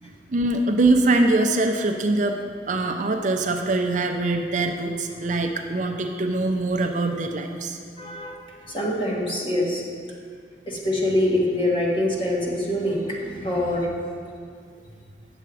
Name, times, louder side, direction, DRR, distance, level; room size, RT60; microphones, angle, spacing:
voice 1, 0.0-2.4 2.7-7.8, right 2 dB, 45° right, 4 dB, 0.5 m, -23 dB
voice 2, 8.0-8.4 8.6-9.8 10.7-13.9, left 1 dB, 30° left, -3 dB, 1.4 m, -24 dB
8.9 x 6.8 x 4.8 m, 2.1 s
head